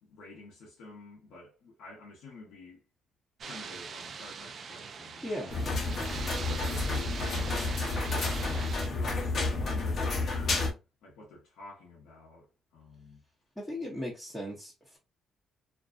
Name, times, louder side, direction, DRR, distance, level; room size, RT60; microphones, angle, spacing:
voice 1, 0.0-2.8 3.4-5.3 5.6-6.0 6.2-8.4 8.8-13.2, left 2 dB, 85° left, 0.8 m, -49 dB
sound 1, 3.4-8.9, right 5 dB, 55° right, 0.4 m, -42 dB
voice 2, 5.2-5.7 13.6-15.0, left 1 dB, 10° left, 0.9 m, -37 dB
sound 2, 5.5-10.7, left 3 dB, 50° left, 0.9 m, -30 dB
2.6 x 2.2 x 2.4 m
cardioid pair, 90°, 0 cm